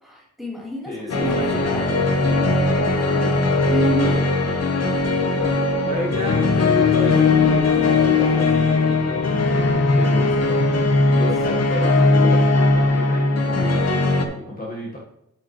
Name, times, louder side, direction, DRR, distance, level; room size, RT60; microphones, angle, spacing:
voice 1, 0.0-1.9 3.7-4.2 11.1-11.3, right 1 dB, ahead, -4 dB, 2.8 m, -28 dB
voice 2, 0.8-3.5 5.3-10.6 11.1-13.9 14.3-15.0, equal, 30° left, -4 dB, 1.5 m, -32 dB
sound 1, 1.1-14.2, left 3 dB, 55° left, 1.2 m, -19 dB
12.0 x 5.1 x 3.2 m, 0.81 s
cardioid pair, 100°, 31 cm